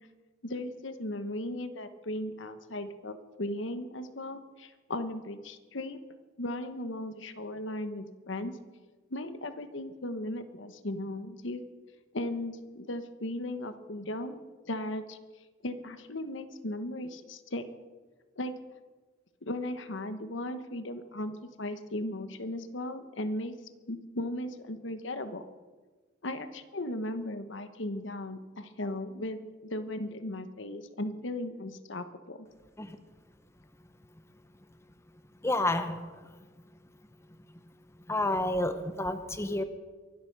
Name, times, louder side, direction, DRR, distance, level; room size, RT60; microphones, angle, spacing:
voice 1, 0.4-6.0 6.4-8.6 9.1-11.6 12.1-15.2 15.6-17.7 18.4-18.5 19.4-21.3 21.6-23.5 23.9-25.5 26.2-32.5, left 1 dB, 65° left, 10 dB, 1.1 m, -37 dB
voice 2, 35.4-36.0 38.1-39.6, left 1 dB, 15° left, 9 dB, 0.8 m, -29 dB
23.5 x 8.1 x 6.7 m, 1.3 s
head